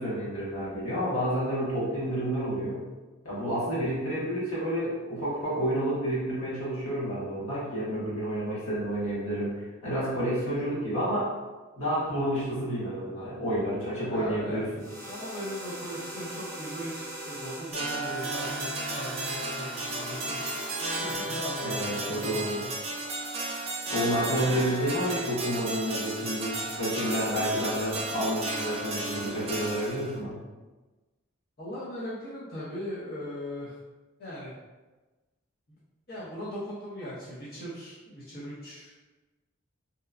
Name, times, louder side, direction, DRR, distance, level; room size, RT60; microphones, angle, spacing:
voice 1, 0.0-2.8 3.2-11.3 11.8-14.7 21.6-22.6 23.9-30.4, equal, 85° left, -8 dB, 1.1 m, -30 dB
voice 2, 14.0-14.6 15.1-18.7 18.9-20.7 21.0-22.7 31.6-33.7 34.2-34.5 36.1-38.9, equal, 45° left, -10 dB, 0.7 m, -38 dB
sound 1, 14.8-21.1, right 1 dB, 10° left, 0.8 m, -40 dB
sound 2, 17.7-30.2, right 2 dB, 30° right, 0.3 m, -34 dB
2.8 x 2.2 x 2.4 m, 1.2 s
head